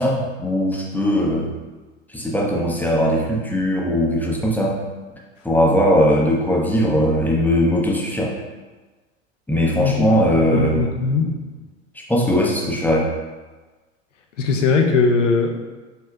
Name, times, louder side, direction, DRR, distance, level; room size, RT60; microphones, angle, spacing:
voice 1, 0.0-1.5 2.1-4.8 5.4-8.4 9.5-10.8 11.9-13.1, equal, 5° left, -2 dB, 0.7 m, -19 dB
voice 2, 9.8-10.2 10.5-11.4 14.4-15.6, left 4 dB, 80° left, 2 dB, 0.8 m, -19 dB
6.7 x 3.1 x 2.3 m, 1.3 s
hypercardioid pair, 85°, 37 cm